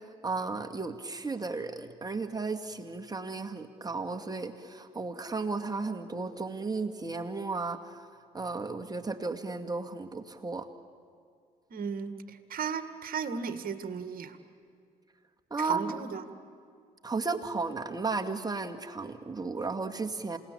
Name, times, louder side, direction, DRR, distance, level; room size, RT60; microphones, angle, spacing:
voice 1, 0.2-8.0 8.3-10.6 15.5-15.9 17.0-20.4, right 3 dB, 20° right, 5 dB, 2.1 m, -34 dB
voice 2, 11.7-14.4 15.6-16.3, right 6 dB, 50° right, 9 dB, 1.9 m, -35 dB
28.0 x 18.5 x 8.7 m, 2.3 s
hypercardioid pair, 50°, 19 cm